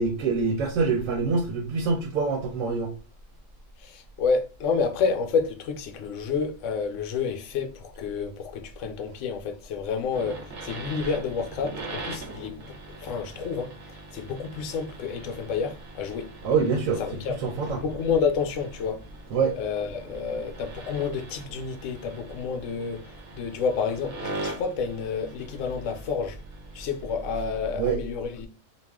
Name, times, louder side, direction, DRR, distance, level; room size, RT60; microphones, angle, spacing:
voice 1, 0.0-2.9 16.4-17.0 17.4-17.8 19.3-19.6 27.8-28.0, right 5 dB, 85° right, 1.0 m, -25 dB
voice 2, 3.8-12.6 12.9-16.3 17.0-17.4 17.8-19.0 19.5-26.4 26.7-28.5, left 5 dB, 75° left, 0.9 m, -29 dB
sound 1, 10.1-27.8, right 3 dB, 45° right, 0.8 m, -42 dB
2.4 x 2.3 x 3.4 m
omnidirectional pair, 1.3 m